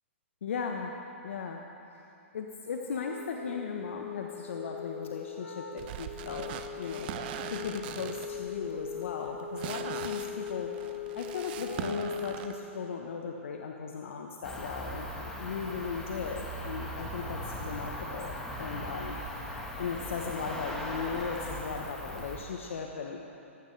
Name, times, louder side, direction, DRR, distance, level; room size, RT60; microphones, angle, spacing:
voice 1, 0.4-0.9 1.2-1.6 2.3-7.1 7.5-10.7 11.1-19.2 19.8-23.3, left 6 dB, 65° left, 2 dB, 1.1 m, -37 dB
Wind instrument woodwind instrument, 2.9-12.7, left 7 dB, 85° left, 1.4 m, -40 dB
sound 1, 5.8-12.5, right 9 dB, 45° right, 0.8 m, -41 dB
Cricket, 14.4-22.4, equal, 5° left, 1.9 m, -39 dB
19.0 x 15.5 x 3.3 m, 2.7 s
hypercardioid pair, 120°, 7 cm